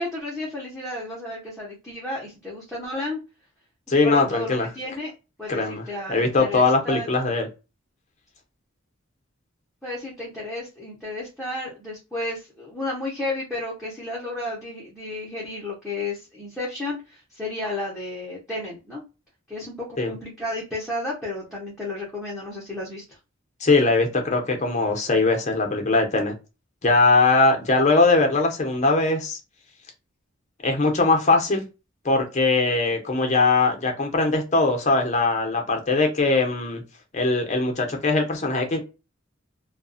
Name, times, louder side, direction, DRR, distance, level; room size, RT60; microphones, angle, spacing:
voice 1, 0.0-3.2 4.0-5.1 5.4-7.1 9.8-19.0 19.5-23.2, left 2 dB, ahead, -5 dB, 0.7 m, -32 dB
voice 2, 3.9-4.7 5.5-7.5 20.0-20.1 23.6-26.3 26.8-29.4 30.6-31.7 32.0-36.8 37.1-38.8, left 3 dB, 35° left, 3 dB, 0.7 m, -21 dB
2.4 x 2.2 x 2.5 m, 0.30 s
head